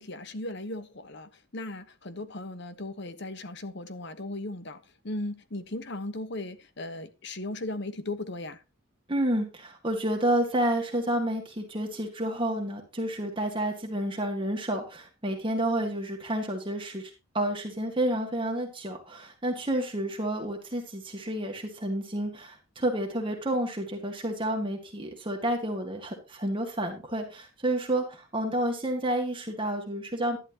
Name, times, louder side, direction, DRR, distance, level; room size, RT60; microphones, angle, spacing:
voice 1, 0.0-8.6, left 2 dB, 55° left, 1.2 m, -37 dB
voice 2, 9.1-30.4, right 1 dB, 25° right, 1.9 m, -30 dB
11.5 x 10.5 x 2.9 m
head